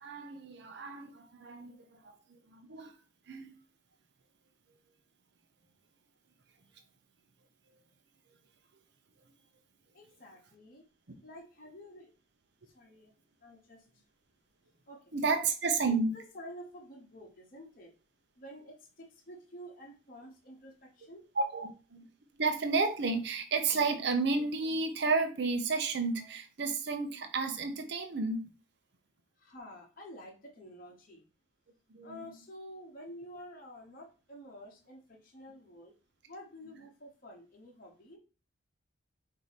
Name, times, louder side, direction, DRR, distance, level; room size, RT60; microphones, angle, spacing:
voice 1, 0.0-2.9 3.3-3.6 15.1-16.1 21.4-22.1 22.4-28.5 31.9-32.2, right 4 dB, 60° right, 0.7 m, -32 dB
voice 2, 9.9-10.9 11.2-12.1 12.7-13.1 13.4-13.8 14.9-15.0 15.7-17.9 18.4-21.2 29.4-31.2 32.0-35.9 36.3-38.2, equal, 45° left, 1.0 m, -50 dB
4.6 x 2.7 x 4.0 m
head